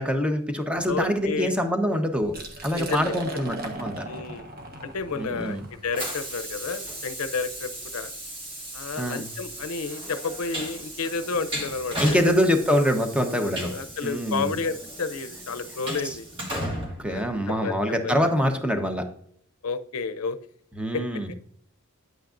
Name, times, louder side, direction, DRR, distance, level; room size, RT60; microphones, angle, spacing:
voice 1, 0.0-2.4 2.6-4.0 5.2-5.6 9.0-9.3 12.0-13.7 14.0-14.6 16.0-16.2 17.0-19.1 20.8-21.3, equal, 5° right, 5 dB, 0.9 m, -25 dB
voice 2, 0.9-1.5 2.7-3.5 4.0-4.5 4.8-8.1 8.7-12.3 13.4-16.3 17.1-18.4 19.6-20.4 20.9-21.0, left 4 dB, 80° left, 11 dB, 0.6 m, -31 dB
Liquid, 2.2-8.0, right 1 dB, 45° right, 1.4 m, -39 dB
Train, 4.8-18.0, right 1 dB, 25° right, 1.8 m, -36 dB
9.3 x 8.8 x 2.5 m, 0.64 s
head